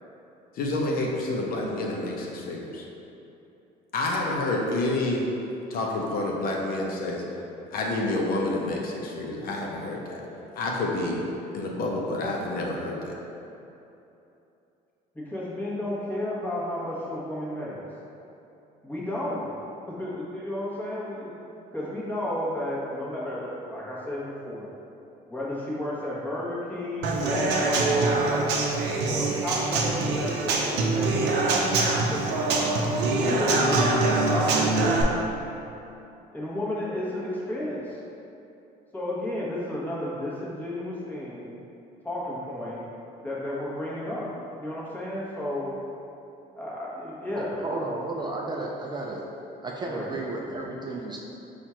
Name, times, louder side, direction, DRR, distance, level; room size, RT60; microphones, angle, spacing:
voice 1, 0.5-2.9 3.9-5.3 5.7-7.2 7.7-10.2 10.6-11.2 11.5-13.1, left 2 dB, 60° left, -1 dB, 0.6 m, -28 dB
voice 2, 15.1-17.8 18.8-19.5 20.0-21.3 21.7-24.7 25.3-28.5 29.0-31.1 32.1-32.6 33.1-35.1 36.3-38.0 38.9-41.5 42.0-42.8 43.2-44.3 44.6-45.8 46.6-47.8 49.3-49.4 49.9-50.1 50.4-50.8, left 1 dB, 10° left, -7 dB, 1.1 m, -32 dB
Human voice / Acoustic guitar / Drum, 27.0-35.0, right 3 dB, 85° right, 0.5 m, -24 dB
voice 3, 47.6-49.2 49.6-51.2, right 2 dB, 25° right, -2 dB, 0.4 m, -33 dB
4.4 x 2.4 x 4.2 m, 2.9 s
cardioid pair, 110°, 17 cm